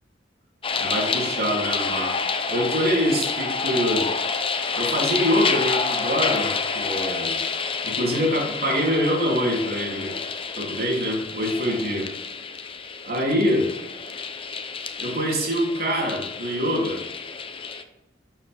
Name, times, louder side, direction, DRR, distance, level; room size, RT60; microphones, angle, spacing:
sound 1, 0.6-17.8, left 5 dB, 30° left, 0.8 m, -29 dB
voice 1, 0.8-2.2 2.5-4.1 4.7-7.4 7.8-10.2 10.6-12.1 13.0-13.8 15.0-17.0, equal, 55° right, -2 dB, 3.3 m, -24 dB
12.0 x 7.3 x 3.6 m, 0.93 s
head